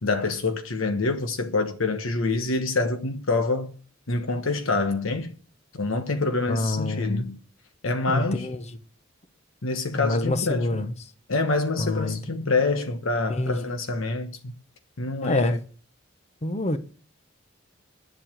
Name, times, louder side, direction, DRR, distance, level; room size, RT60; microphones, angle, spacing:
voice 1, 0.0-3.7 4.1-5.3 5.7-7.4 7.8-8.5 9.6-10.7 11.3-14.5 15.0-15.6, left 3 dB, 75° left, 1.2 m, -26 dB
voice 2, 6.5-7.3 8.1-8.6 9.9-10.9 11.8-12.2 13.3-13.7 15.2-15.6 16.4-16.8, left 2 dB, 35° left, 0.9 m, -26 dB
10.5 x 7.6 x 7.6 m
head